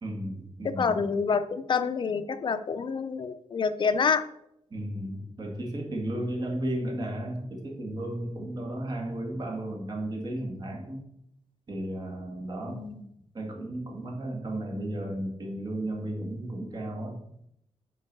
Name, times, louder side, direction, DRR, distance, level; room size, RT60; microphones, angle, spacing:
voice 1, 0.0-1.0 4.7-11.0 11.7-12.8 13.3-17.2, right 1 dB, 40° right, 0 dB, 2.1 m, -34 dB
voice 2, 0.6-4.2 12.7-13.0, left 5 dB, 45° left, 10 dB, 0.6 m, -27 dB
9.3 x 4.6 x 5.4 m, 0.77 s
wide cardioid pair, 160°, 11 cm